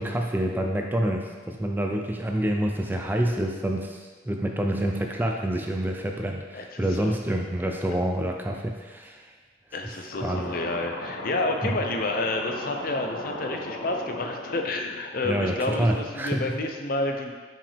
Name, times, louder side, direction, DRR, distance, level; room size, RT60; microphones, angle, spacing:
voice 1, 0.0-9.3 10.2-10.5 11.6-11.8 15.2-16.4, right 1 dB, 10° right, 2 dB, 0.3 m, -27 dB
voice 2, 6.5-7.2 9.7-17.3, left 2 dB, 50° left, 3 dB, 0.5 m, -29 dB
sound 1, 10.1-15.9, left 2 dB, 75° left, 0.9 m, -37 dB
5.7 x 5.0 x 3.4 m, 1.4 s
head